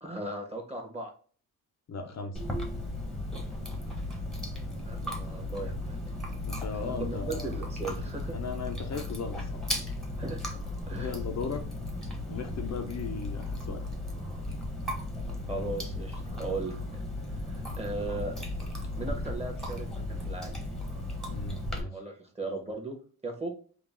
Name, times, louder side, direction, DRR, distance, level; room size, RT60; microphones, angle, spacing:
voice 1, 0.0-1.1 4.8-6.0 6.8-8.4 10.2-10.6 10.9-11.1 15.4-18.4 19.0-20.6 21.9-23.0 23.2-23.5, right 2 dB, 15° right, 1 dB, 1.5 m, -37 dB
voice 2, 1.9-2.4 6.4-7.6 8.3-9.7 11.0-11.7 12.3-13.8 21.3-22.0, left 5 dB, 50° left, 4 dB, 0.7 m, -37 dB
Chewing mastication, 2.3-21.8, left 1 dB, ahead, 1.2 m, -35 dB
3.8 x 2.5 x 3.7 m, 0.41 s
cardioid pair, 90°, 36 cm